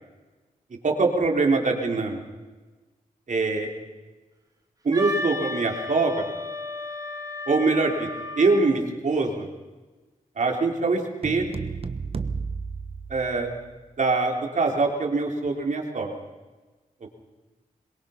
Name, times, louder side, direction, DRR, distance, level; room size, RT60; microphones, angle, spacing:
voice 1, 0.8-2.2 3.3-3.7 4.8-6.2 7.5-8.1 8.4-9.5 10.4-11.6 13.1-13.5 14.0-16.1, right 3 dB, 55° right, 1 dB, 3.8 m, -23 dB
Wind instrument woodwind instrument, 4.9-8.8, left 2 dB, 25° right, 4.2 m, -33 dB
sound 1, 11.2-13.8, right 5 dB, 40° right, 1.2 m, -33 dB
22.5 x 21.5 x 5.9 m, 1.3 s
cardioid pair, 75°, 15 cm